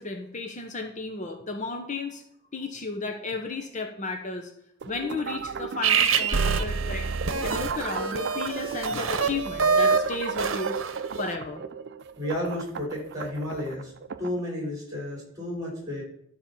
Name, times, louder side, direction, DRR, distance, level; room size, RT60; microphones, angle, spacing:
voice 1, 0.0-2.2 2.5-4.5 4.9-7.1 7.4-10.8 11.2-11.6, left 3 dB, 40° left, 4 dB, 0.9 m, -33 dB
sound 1, 4.8-14.4, right 5 dB, 60° right, 0.5 m, -36 dB
sound 2, 5.8-11.3, right 5 dB, 80° right, 0.9 m, -26 dB
voice 2, 12.2-13.9 14.2-16.0, left 1 dB, 20° right, -3 dB, 4.6 m, -32 dB
13.0 x 4.3 x 7.0 m, 0.72 s
head